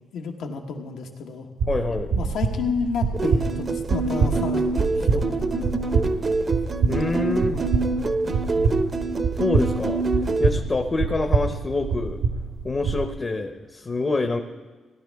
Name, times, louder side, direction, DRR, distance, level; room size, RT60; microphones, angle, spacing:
voice 1, 0.1-1.5 2.1-6.4 7.0-8.0 8.5-9.1, left 5 dB, 90° left, 3 dB, 1.3 m, -32 dB
sound 1, 1.6-13.0, right 5 dB, 80° right, 1.0 m, -26 dB
voice 2, 1.7-2.1 6.9-7.6 9.4-10.0 10.4-12.2 12.6-14.4, left 3 dB, 30° left, 5 dB, 0.7 m, -26 dB
sound 2, 3.1-10.5, right 3 dB, 35° right, 0.6 m, -26 dB
16.5 x 11.0 x 3.5 m, 1.3 s
cardioid pair, 110°, 0 cm